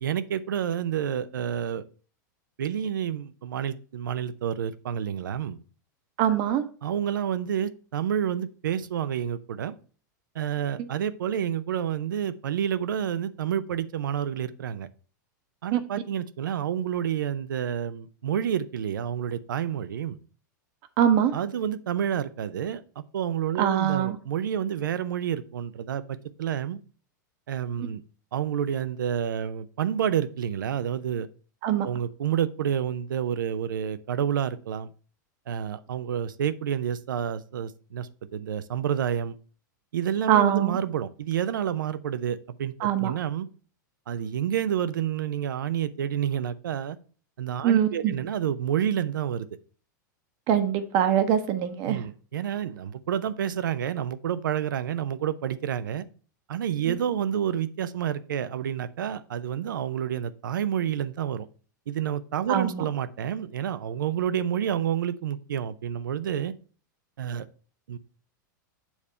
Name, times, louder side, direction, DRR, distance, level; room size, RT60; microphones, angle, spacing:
voice 1, 0.0-1.8 2.6-5.6 6.8-9.8 10.3-14.9 15.6-20.2 21.3-26.8 27.5-28.0 28.3-31.3 31.8-34.9 35.5-39.4 39.9-43.5 44.1-47.0 47.4-49.5 51.9-56.1 56.5-61.5 61.9-66.5 67.2-67.5 67.9-68.0, right 9 dB, 80° right, 14 dB, 0.6 m, -29 dB
voice 2, 6.2-6.6 10.8-10.9 15.7-15.8 21.0-21.3 23.6-24.2 31.6-31.9 40.3-40.8 42.8-43.1 47.6-48.1 50.5-52.0 56.9-57.0 62.5-62.8, right 10 dB, 50° right, 7 dB, 0.9 m, -23 dB
7.1 x 3.5 x 5.5 m, 0.40 s
hypercardioid pair, 105°, 11 cm